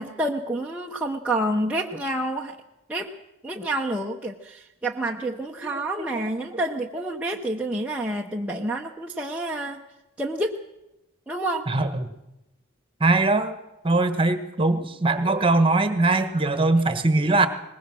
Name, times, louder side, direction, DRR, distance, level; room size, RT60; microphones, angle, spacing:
voice 1, 0.0-2.6 2.9-3.1 3.4-9.8 10.2-10.6 11.3-11.7, right 1 dB, 5° right, -2 dB, 0.9 m, -28 dB
voice 2, 11.7-12.1 13.0-13.6 13.8-17.5, right 2 dB, 25° right, 10 dB, 1.4 m, -21 dB
22.0 x 20.0 x 6.4 m, 0.93 s
head